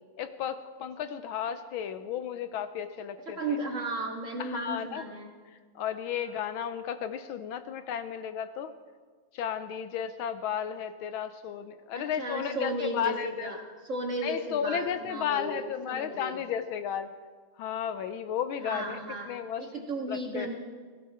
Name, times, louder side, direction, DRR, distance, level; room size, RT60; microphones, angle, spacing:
voice 1, 0.2-3.6 4.4-5.1 5.7-8.7 9.3-13.5 14.2-17.1 17.6-19.0 19.3-19.7 20.1-20.5, left 8 dB, 75° left, 11 dB, 1.4 m, -33 dB
voice 2, 3.4-5.3 11.9-16.4 18.6-20.5, right 1 dB, 35° right, 1 dB, 2.0 m, -35 dB
17.0 x 16.0 x 4.3 m, 1.5 s
omnidirectional pair, 2.4 m